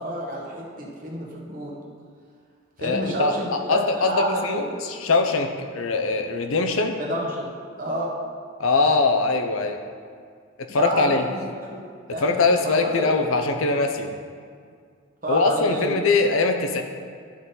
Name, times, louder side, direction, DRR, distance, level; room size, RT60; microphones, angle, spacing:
voice 1, 0.0-1.8 2.8-4.7 6.9-7.5 7.8-8.2 10.7-12.2 12.6-13.1 15.2-15.9, right 1 dB, 40° right, -3 dB, 1.2 m, -29 dB
voice 2, 2.8-6.9 8.6-9.8 10.6-11.3 12.2-14.1 15.3-16.8, left 3 dB, 80° left, 5 dB, 0.7 m, -22 dB
11.5 x 3.9 x 4.0 m, 2.1 s
head